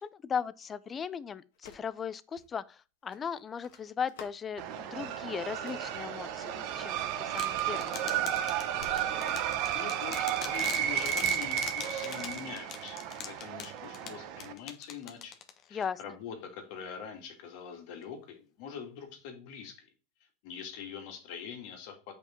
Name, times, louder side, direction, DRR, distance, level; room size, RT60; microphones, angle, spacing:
voice 1, 0.0-8.3 15.7-16.0, left 7 dB, 25° left, 0.5 m, -37 dB
sound 1, 1.5-2.0 2.4-2.5 3.1-4.5 5.4-6.1 6.8-7.1 7.5-9.7, left 5 dB, 80° left, 1.6 m, -53 dB
sound 2, 4.6-14.5, right 11 dB, 55° right, 1.0 m, -33 dB
sound 3, 7.4-15.8, left 9 dB, 40° left, 1.1 m, -42 dB
voice 2, 9.7-15.3 15.7-19.9 20.4-22.1, left 7 dB, 65° left, 2.3 m, -44 dB
7.1 x 5.3 x 4.5 m
supercardioid pair, 120°, 0 cm